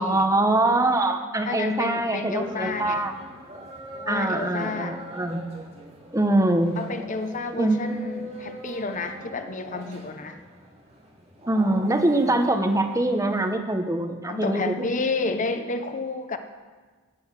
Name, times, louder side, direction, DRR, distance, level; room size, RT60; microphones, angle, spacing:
voice 1, 0.0-3.1 4.1-5.4 6.1-6.8 7.5-8.0 11.5-14.8, right 2 dB, 15° right, 5 dB, 0.9 m, -23 dB
voice 2, 1.4-3.0 3.9-5.0 6.8-10.4 14.3-16.4, left 3 dB, 35° left, 8 dB, 0.7 m, -30 dB
sound 1, 2.4-13.5, right 1 dB, 30° right, 2.8 m, -42 dB
14.5 x 7.8 x 6.2 m, 1.4 s
head